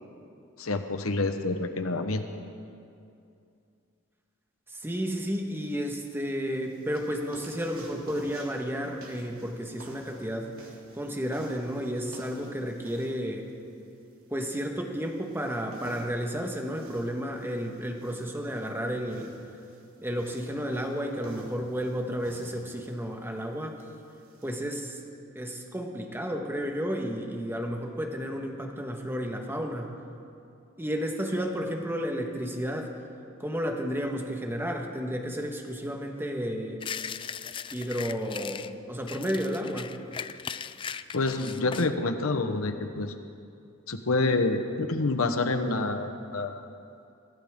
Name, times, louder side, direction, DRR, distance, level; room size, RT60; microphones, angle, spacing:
voice 1, 0.6-2.2 41.1-43.1 43.9-46.7, left 3 dB, 85° left, 7 dB, 1.0 m, -27 dB
voice 2, 4.8-10.5 10.9-13.4 14.3-19.3 20.0-23.8 24.4-25.0 25.3-30.0 30.8-32.9 33.4-36.8 37.7-40.0, equal, 10° right, 2 dB, 1.4 m, -32 dB
sound 1, 6.0-24.5, right 1 dB, 70° right, 2.9 m, -51 dB
sound 2, 36.8-38.7 39.1-41.9, left 7 dB, 25° left, 0.3 m, -38 dB
23.5 x 16.0 x 3.7 m, 2.5 s
head